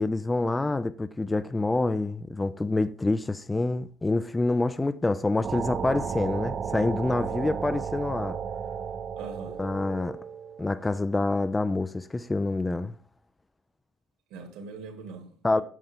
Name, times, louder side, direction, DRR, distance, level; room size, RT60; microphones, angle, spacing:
voice 1, 0.0-8.4 9.6-10.2 10.6-13.0 15.4-15.6, left 2 dB, 10° left, 0.4 m, -27 dB
sound 1, 5.4-10.9, right 7 dB, 35° right, 0.7 m, -34 dB
voice 2, 9.2-9.6 14.3-15.6, right 4 dB, 70° right, 2.2 m, -42 dB
9.4 x 6.8 x 3.8 m
cardioid pair, 120°, 0 cm